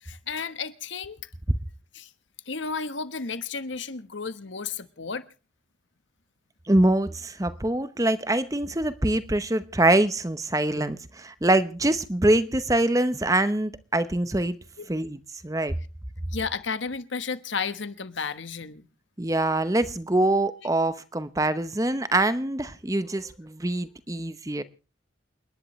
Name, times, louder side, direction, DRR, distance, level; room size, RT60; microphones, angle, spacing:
voice 1, 0.0-1.2 1.9-2.1 2.5-5.2 14.8-14.9 16.3-18.9, left 5 dB, 80° left, 1.2 m, -33 dB
voice 2, 6.7-14.6 14.9-15.7 19.2-24.6, right 1 dB, 20° right, 0.9 m, -24 dB
29.0 x 11.0 x 3.2 m
head